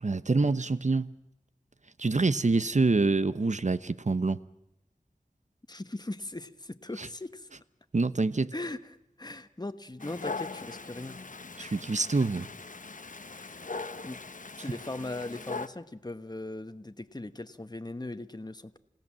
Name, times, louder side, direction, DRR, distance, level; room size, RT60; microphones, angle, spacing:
voice 1, 0.0-1.1 2.0-4.4 7.0-7.1 7.9-8.5 11.6-12.5, right 3 dB, 55° right, 14 dB, 0.9 m, -26 dB
voice 2, 5.7-7.5 8.5-11.2 11.6-11.8 13.3-13.6 14.0-14.2 14.6-18.8, left 2 dB, 30° left, 10 dB, 1.2 m, -39 dB
Dog, 10.0-15.7, left 4 dB, 65° left, 1.0 m, -40 dB
29.0 x 16.5 x 7.5 m, 0.81 s
wide cardioid pair, 40°, 14 cm